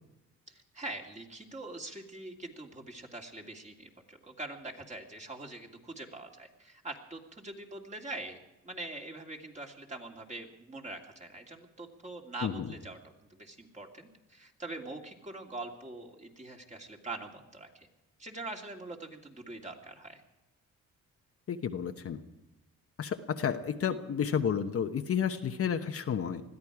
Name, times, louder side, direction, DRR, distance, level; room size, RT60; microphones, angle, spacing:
voice 1, 0.5-17.9 18.2-20.2, right 2 dB, 25° right, 1 dB, 2.6 m, -43 dB
voice 2, 12.4-12.7 21.5-22.2 23.0-26.4, left 8 dB, 50° left, 6 dB, 1.1 m, -31 dB
21.0 x 13.5 x 4.9 m, 0.97 s
cardioid pair, 90°, 30 cm